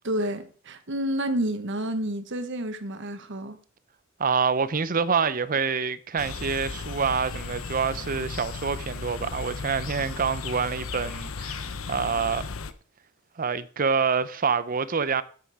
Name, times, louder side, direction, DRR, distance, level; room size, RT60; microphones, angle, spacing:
voice 1, 0.0-3.6, right 1 dB, 60° right, 1.3 m, -29 dB
voice 2, 4.2-12.4 13.4-15.2, right 5 dB, 45° right, 0.7 m, -26 dB
sound 1, 6.2-12.7, left 4 dB, 85° left, 0.8 m, -35 dB
10.5 x 7.7 x 4.9 m
head